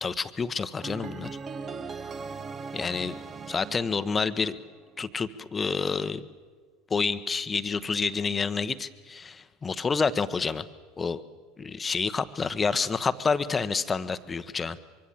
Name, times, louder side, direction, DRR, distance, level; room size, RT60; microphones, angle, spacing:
voice 1, 0.0-1.4 2.7-3.2 3.5-4.6 5.0-6.2 6.9-10.6 11.0-11.2 11.6-14.8, left 5 dB, 20° left, 12 dB, 1.1 m, -28 dB
sound 1, 0.8-4.9, right 5 dB, 25° right, 1.0 m, -39 dB
24.5 x 24.5 x 7.5 m, 1.5 s
figure-of-eight pair, 75°, 0 cm